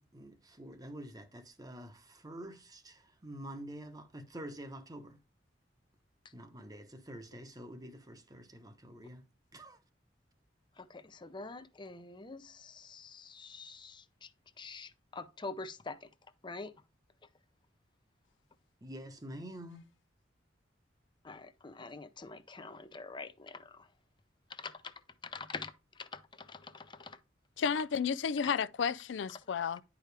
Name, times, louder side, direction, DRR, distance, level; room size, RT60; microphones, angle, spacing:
voice 1, 0.0-5.2 6.3-9.2 9.5-9.8 18.8-19.9, right 1 dB, 20° right, 1.0 m, -47 dB
voice 2, 10.8-14.3 14.6-16.1 16.4-16.7 21.2-23.9 24.5-24.9 25.2-25.7 26.0-27.2, left 3 dB, 25° left, 0.6 m, -45 dB
voice 3, 27.6-29.8, left 6 dB, 80° left, 0.4 m, -32 dB
10.5 x 4.9 x 3.3 m
head